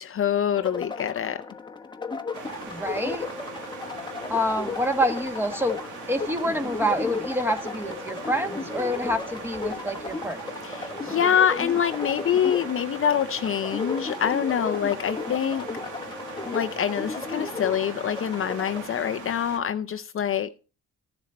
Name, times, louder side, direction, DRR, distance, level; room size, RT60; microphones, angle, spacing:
voice 1, 0.0-1.4 10.6-15.7 16.5-20.5, left 9 dB, 45° left, 0.6 m, -25 dB
sound 1, 0.5-18.8, left 4 dB, 15° left, 1.1 m, -35 dB
sound 2, 2.3-19.6, right 4 dB, 85° right, 2.1 m, -40 dB
voice 2, 2.7-3.3 4.3-5.8 6.1-10.4, equal, 5° right, 1.4 m, -27 dB
14.0 x 7.2 x 4.3 m
cardioid pair, 90°, 30 cm